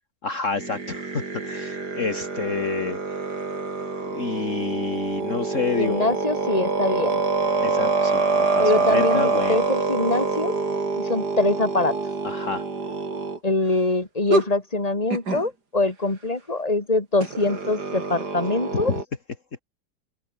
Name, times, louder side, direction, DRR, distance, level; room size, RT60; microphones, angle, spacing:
voice 1, 0.2-3.2 4.1-6.1 7.6-9.6 12.2-12.6, left 4 dB, 50° left, 2.2 m, -29 dB
sound 1, 0.6-13.4 14.3-14.5 15.1-15.4 17.2-19.0, right 4 dB, 80° right, 4.0 m, -26 dB
voice 2, 5.8-7.2 8.6-10.5 11.0-11.9 13.4-18.9, left 2 dB, 20° left, 3.2 m, -24 dB
open air
omnidirectional pair, 1.7 m